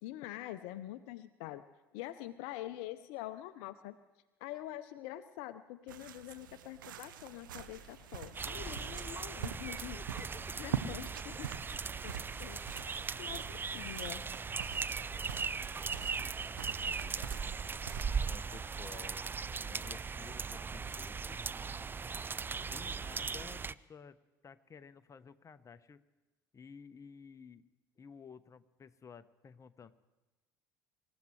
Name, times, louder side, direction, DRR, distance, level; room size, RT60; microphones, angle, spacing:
voice 1, 0.0-1.6 1.9-3.9 4.4-10.0 10.6-12.1 12.4-12.9 13.2-14.2, left 14 dB, 65° left, 12 dB, 0.6 m, -45 dB
sound 1, 5.9-18.6, right 9 dB, 80° right, 0.9 m, -45 dB
sound 2, 7.6-15.2, left 2 dB, 5° left, 6.6 m, -61 dB
sound 3, 8.3-23.7, right 5 dB, 20° right, 0.4 m, -39 dB
voice 2, 9.9-10.7 12.9-13.1 13.3-14.2 15.0-17.9 18.2-21.4 22.4-24.2 24.4-26.0 26.5-27.7 28.0-29.9, left 6 dB, 30° left, 11 dB, 0.9 m, -54 dB
26.0 x 14.5 x 3.2 m, 1.1 s
hypercardioid pair, 65°, 11 cm